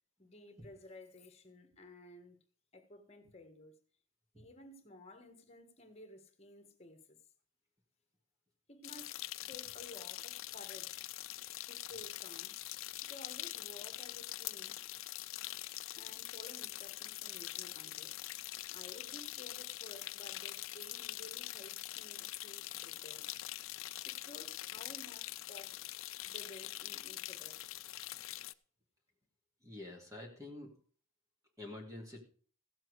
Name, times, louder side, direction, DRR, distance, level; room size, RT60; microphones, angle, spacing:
voice 1, 0.2-2.4 2.7-3.8 4.3-7.2 8.7-11.1 11.7-12.5 13.0-14.8 15.9-18.1 18.7-23.2 24.0-25.8 26.2-27.6, left 1 dB, 30° left, 1.7 m, -54 dB
sound 1, 8.8-28.5, left 16 dB, 75° left, 0.4 m, -44 dB
voice 2, 29.6-30.7 31.6-32.2, left 2 dB, 15° right, 2.0 m, -47 dB
16.0 x 7.5 x 4.8 m
head